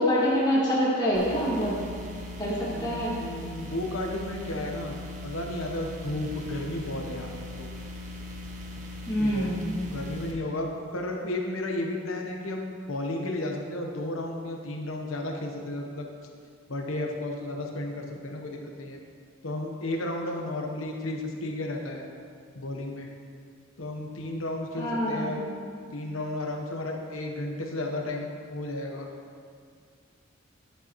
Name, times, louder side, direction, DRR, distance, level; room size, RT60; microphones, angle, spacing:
voice 1, 0.0-1.8 2.4-3.1 9.1-9.9 24.8-25.5, equal, 20° left, -7 dB, 2.0 m, -26 dB
sound 1, 1.1-10.3, left 1 dB, 40° right, 0.9 m, -40 dB
voice 2, 2.7-4.9 5.2-7.7 9.2-9.5 9.9-16.1 16.7-19.0 19.4-22.1 22.5-23.1 23.8-25.5 25.9-29.1, left 1 dB, 85° left, 2 dB, 1.1 m, -33 dB
11.0 x 6.8 x 3.1 m, 2.1 s
head